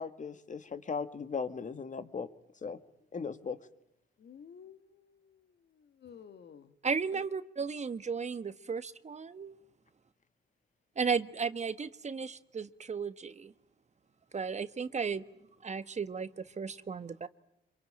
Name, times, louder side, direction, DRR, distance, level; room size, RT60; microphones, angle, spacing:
voice 1, 0.0-2.3 2.6-2.8 3.1-3.6, left 5 dB, 40° left, 12 dB, 2.0 m, -37 dB
voice 2, 4.2-5.4 5.8-6.7 7.1-7.2, left 7 dB, 55° left, 11 dB, 2.1 m, -53 dB
voice 3, 6.8-9.6 11.0-13.5 14.3-15.2 15.6-17.3, right 5 dB, 35° right, 13 dB, 1.3 m, -35 dB
26.5 x 23.5 x 9.0 m, 0.82 s
cardioid pair, 95°, 20 cm